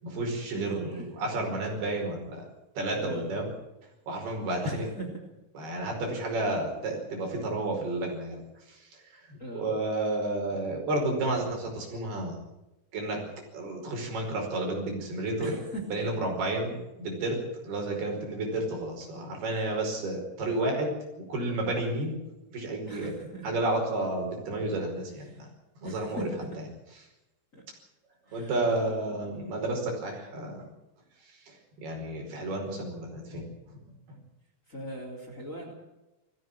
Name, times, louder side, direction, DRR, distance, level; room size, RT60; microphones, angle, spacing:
voice 1, 0.0-2.5 2.8-3.5 4.1-4.9 5.6-8.4 8.7-12.4 12.9-13.2 13.5-15.5 15.9-17.4 17.6-20.9 21.3-22.2 22.5-23.1 23.4-25.5 25.8-26.3 28.3-30.7 31.5-33.5, right 2 dB, 65° right, 2 dB, 7.1 m, -31 dB
voice 2, 0.5-1.0 3.0-3.4 4.6-5.1 9.4-9.7 15.4-15.8 22.9-23.5 25.3-25.4 25.8-26.4 27.5-27.6 28.3-29.5 34.7-35.7, right 1 dB, 20° left, 3 dB, 3.4 m, -40 dB
20.5 x 15.5 x 8.9 m, 0.97 s
omnidirectional pair, 4.9 m